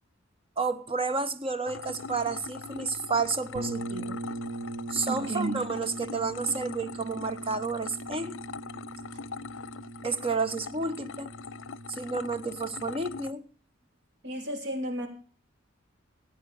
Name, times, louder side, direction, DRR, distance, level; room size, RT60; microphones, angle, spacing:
voice 1, 0.6-4.2 4.9-8.4 10.0-11.3 12.0-13.4, right 4 dB, 30° right, 11 dB, 1.1 m, -31 dB
sound 1, 1.7-13.3, left 5 dB, 70° left, 0.6 m, -42 dB
sound 2, 3.5-13.2, right 2 dB, 80° right, 1.2 m, -41 dB
voice 2, 5.1-5.6 14.2-15.1, right 1 dB, 60° right, 5 dB, 3.1 m, -33 dB
16.0 x 9.0 x 6.8 m, 0.41 s
head